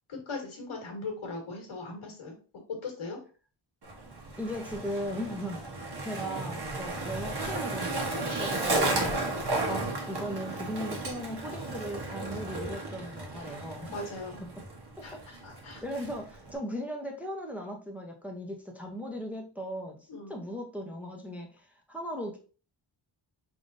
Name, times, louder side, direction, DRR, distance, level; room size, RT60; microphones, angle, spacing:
voice 1, 0.1-3.2 13.9-14.5 15.0-15.1 15.4-15.8 20.1-20.4, left 3 dB, 85° left, 1 dB, 1.7 m, -39 dB
Skateboard, 3.8-16.6, right 2 dB, 55° right, 1.3 m, -34 dB
voice 2, 4.4-5.6 6.0-14.0 15.0-15.2 15.8-22.4, equal, 5° right, 0 dB, 0.8 m, -38 dB
4.8 x 3.6 x 2.7 m, 0.37 s
wide cardioid pair, 110°, 47 cm